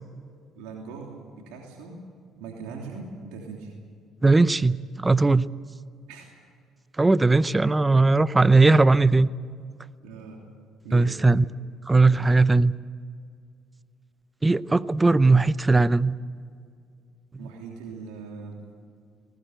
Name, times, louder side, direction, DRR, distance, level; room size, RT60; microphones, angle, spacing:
voice 1, 0.5-2.0 2.3-3.7 6.1-6.3 10.0-10.4 10.8-11.2 17.4-18.6, right 4 dB, 90° right, 0 dB, 3.1 m, -40 dB
voice 2, 4.2-5.5 7.0-9.3 10.9-11.4 11.9-12.7 14.4-16.1, right 3 dB, 20° right, 17 dB, 0.7 m, -19 dB
19.5 x 19.5 x 8.1 m, 2.2 s
supercardioid pair, 75°, 0 cm